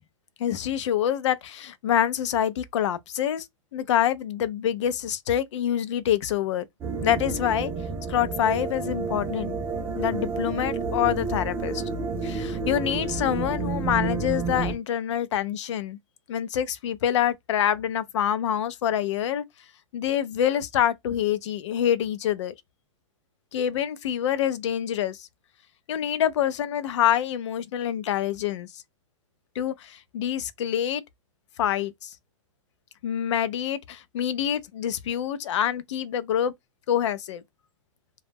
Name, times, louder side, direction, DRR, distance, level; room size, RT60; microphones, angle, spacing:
voice 1, 0.4-3.5 3.7-6.6 7.0-7.7 8.1-9.6 9.9-11.8 12.2-16.0 16.3-19.4 19.9-22.5 23.5-25.3 25.9-28.7 29.6-31.0 31.6-32.1 33.0-36.5 36.9-37.4, left 10 dB, 60° left, 0.5 m, -26 dB
sound 1, 6.8-14.8, right 4 dB, 15° right, 0.4 m, -30 dB
2.2 x 2.0 x 3.3 m
hypercardioid pair, 150°, 17 cm